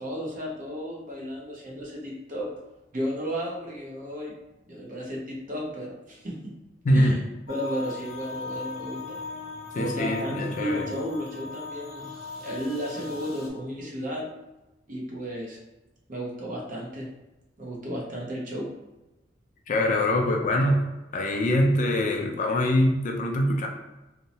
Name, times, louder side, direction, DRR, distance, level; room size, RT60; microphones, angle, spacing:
voice 1, 0.0-2.5 2.9-4.3 4.7-6.6 6.9-7.2 7.5-9.2 9.7-12.1 12.4-14.3 14.9-15.6 16.1-17.1 17.6-18.7, equal, 45° right, -2 dB, 0.7 m, -33 dB
voice 2, 6.9-7.2 9.8-10.8 19.7-20.8 21.1-23.7, left 1 dB, 40° left, 3 dB, 0.3 m, -23 dB
sound 1, 7.5-13.5, left 4 dB, 80° left, 0.8 m, -39 dB
2.7 x 2.0 x 2.7 m, 1.0 s
head